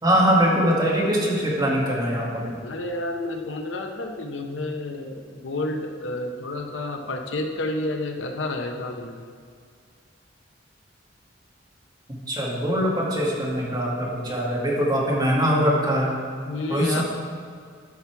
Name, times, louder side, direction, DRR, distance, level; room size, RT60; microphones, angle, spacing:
voice 1, 0.0-2.6 12.3-16.1 16.7-17.0, equal, 20° right, -4 dB, 2.0 m, -22 dB
voice 2, 2.6-9.2 16.5-17.0, left 2 dB, 75° left, 4 dB, 0.8 m, -30 dB
12.0 x 5.9 x 4.6 m, 2.1 s
head